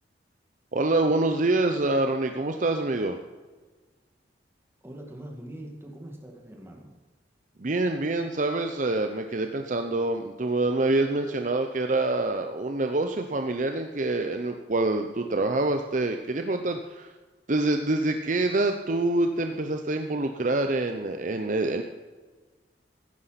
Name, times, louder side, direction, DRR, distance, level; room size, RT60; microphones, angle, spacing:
voice 1, 0.7-3.2 7.6-17.1 17.5-21.8, right 2 dB, 45° right, 6 dB, 0.7 m, -26 dB
voice 2, 4.8-6.9, right 1 dB, 15° right, 0 dB, 2.2 m, -42 dB
15.0 x 10.0 x 5.8 m, 1.4 s
head